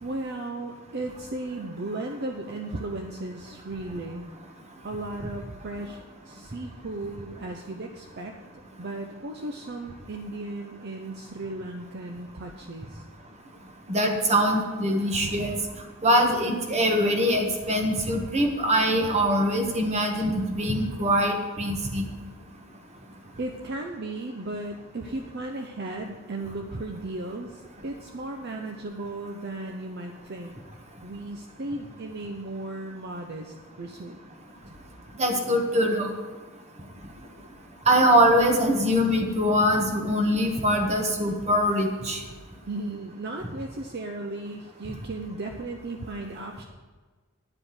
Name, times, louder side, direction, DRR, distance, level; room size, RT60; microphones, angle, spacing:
voice 1, 0.0-4.3 4.8-8.3 8.8-13.0 23.4-30.5 31.0-34.2 42.7-46.6, right 2 dB, 50° right, 3 dB, 0.6 m, -35 dB
voice 2, 13.9-15.6 16.0-22.1 35.2-36.1 37.9-42.2, equal, 30° right, 3 dB, 1.3 m, -23 dB
10.5 x 5.0 x 7.7 m, 1.4 s
head